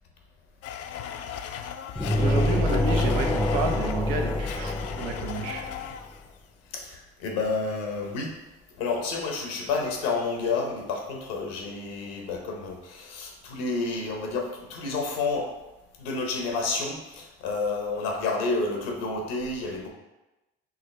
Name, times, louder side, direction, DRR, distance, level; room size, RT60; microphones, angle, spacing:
Domestic sounds home sounds, 0.6-6.3, left 8 dB, 55° left, 0.4 m, -37 dB
sound 1, 2.0-5.8, left 1 dB, 5° left, 0.5 m, -26 dB
voice 1, 2.2-5.7, right 4 dB, 90° right, 3 dB, 0.7 m, -30 dB
voice 2, 6.7-8.3 8.8-15.5 16.0-19.9, left 3 dB, 85° left, 1 dB, 0.9 m, -30 dB
5.0 x 2.9 x 3.3 m, 1.0 s
hypercardioid pair, 60°, 29 cm